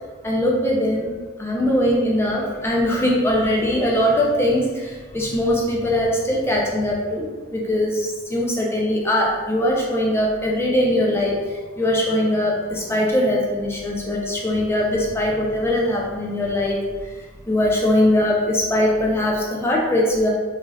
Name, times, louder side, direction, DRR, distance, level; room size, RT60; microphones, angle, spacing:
voice 1, 0.2-17.2 17.5-20.3, left 1 dB, 10° left, -2 dB, 0.3 m, -21 dB
2.6 x 2.3 x 3.1 m, 1.4 s
head